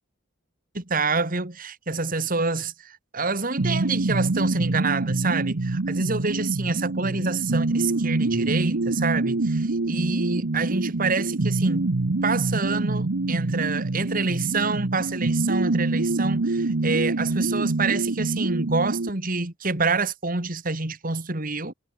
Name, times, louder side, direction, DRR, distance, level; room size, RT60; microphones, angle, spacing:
voice 1, 0.7-11.9 12.2-21.7, right 3 dB, 40° right, 2.4 m, -27 dB
sound 1, 3.6-19.1, right 2 dB, 65° right, 0.9 m, -25 dB
head